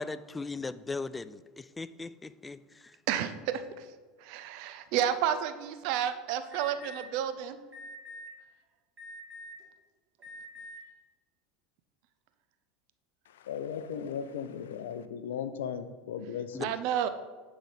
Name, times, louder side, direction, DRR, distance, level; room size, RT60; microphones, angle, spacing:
voice 1, 0.0-2.9 16.5-16.7, left 3 dB, 15° left, 15 dB, 0.3 m, -38 dB
voice 2, 3.1-3.8 4.2-7.6 16.6-17.1, right 10 dB, 65° right, 11 dB, 0.6 m, -31 dB
Alarm, 6.5-7.0 7.7-8.3 9.0-9.6 10.2-10.8, left 1 dB, 40° right, 2.3 m, -45 dB
voice 3, 13.3-16.7, left 8 dB, 80° left, 12 dB, 0.5 m, -37 dB
10.0 x 4.0 x 4.9 m, 1.4 s
hypercardioid pair, 85°, 0 cm